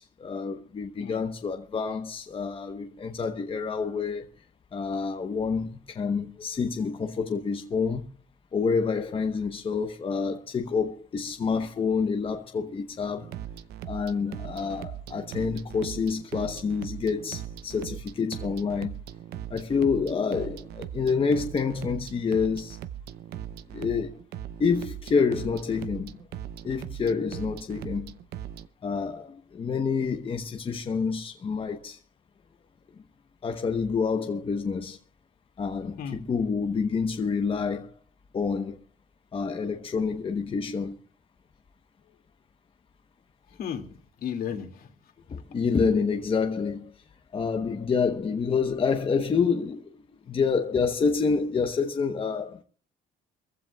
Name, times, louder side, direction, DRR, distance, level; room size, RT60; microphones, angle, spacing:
voice 1, 0.0-4.3 4.7-8.1 8.5-13.3 13.8-19.0 19.5-22.8 23.7-24.2 24.6-26.2 26.6-28.1 28.8-32.0 33.4-35.0 35.6-37.9 38.3-38.8 39.3-41.0 45.3-46.9 47.3-49.9 50.3-52.6, left 5 dB, 30° left, 1.1 m, -28 dB
sound 1, 13.2-28.7, right 10 dB, 75° right, 0.7 m, -39 dB
voice 2, 43.5-45.1, left 8 dB, 65° left, 2.4 m, -36 dB
24.5 x 15.0 x 2.4 m
cardioid pair, 110°, 17 cm